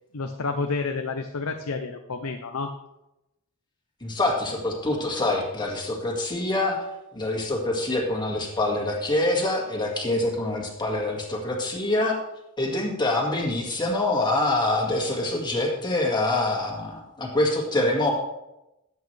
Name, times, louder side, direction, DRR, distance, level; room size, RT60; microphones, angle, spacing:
voice 1, 0.1-2.7, left 4 dB, 70° left, 5 dB, 0.7 m, -30 dB
voice 2, 4.0-6.8 7.1-12.2 12.6-18.1, left 2 dB, 20° left, -1 dB, 2.1 m, -25 dB
13.5 x 8.4 x 3.4 m, 0.91 s
head